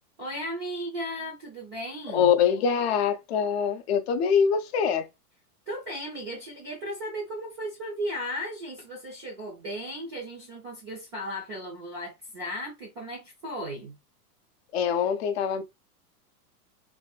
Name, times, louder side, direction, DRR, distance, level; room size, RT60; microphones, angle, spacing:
voice 1, 0.2-2.3 5.7-14.0, equal, 20° right, 0.3 m, -36 dB
voice 2, 2.1-5.1 14.7-15.6, left 7 dB, 45° left, 0.4 m, -24 dB
2.6 x 2.1 x 2.3 m
supercardioid pair, 150°, 48 cm